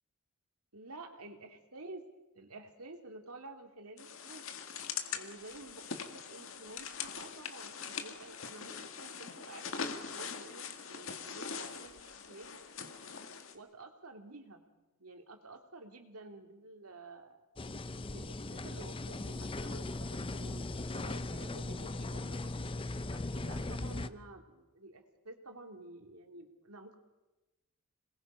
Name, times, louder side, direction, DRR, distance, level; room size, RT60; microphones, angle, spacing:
voice 1, 0.7-2.0 2.3-4.4 5.1-12.6 13.5-14.6 15.0-17.4 18.1-22.5 23.0-27.0, right 2 dB, 85° right, 4 dB, 2.8 m, -51 dB
sound 1, 4.0-13.5, left 6 dB, 60° left, 1.9 m, -42 dB
sound 2, 17.6-24.1, left 2 dB, 25° left, 0.6 m, -39 dB
27.0 x 20.5 x 5.6 m, 1.1 s
head